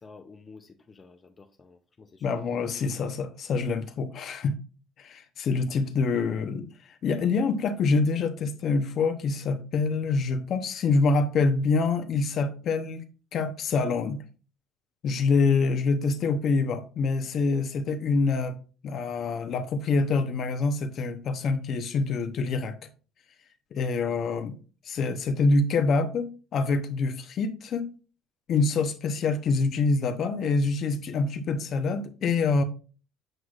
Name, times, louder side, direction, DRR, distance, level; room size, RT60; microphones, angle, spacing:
voice 1, 0.0-2.3 24.0-24.1, left 4 dB, 25° left, 0.5 m, -50 dB
voice 2, 2.2-4.6 5.0-6.7 7.0-13.0 13.3-14.2 15.0-18.6 18.8-22.8 23.7-24.5 24.9-27.9 28.5-32.6, left 4 dB, 50° left, 0.8 m, -26 dB
7.8 x 6.3 x 2.4 m
cardioid pair, 130°, 0 cm